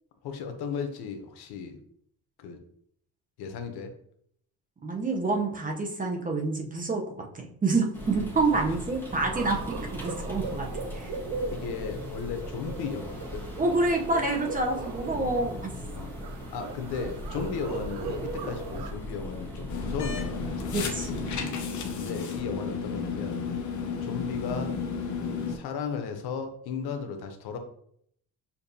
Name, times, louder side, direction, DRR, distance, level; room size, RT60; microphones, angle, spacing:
voice 1, 0.2-1.8 2.4-2.6 3.4-3.9 8.6-8.8 11.5-13.5 15.2-15.4 15.9-16.1 16.5-20.8 21.9-23.4 24.0-24.8 25.5-27.6, left 6 dB, 90° left, 6 dB, 0.8 m, -35 dB
voice 2, 4.8-7.0 7.3-10.7 10.9-11.1 13.6-15.7 20.7-21.5, right 3 dB, 20° right, 2 dB, 0.7 m, -28 dB
sound 1, 7.9-21.4, equal, 5° left, 1.1 m, -39 dB
sound 2, 9.3-18.9, right 4 dB, 80° right, 0.6 m, -39 dB
sound 3, 19.7-25.6, left 5 dB, 50° left, 0.8 m, -33 dB
6.8 x 2.6 x 2.7 m, 0.68 s
cardioid pair, 130°, 38 cm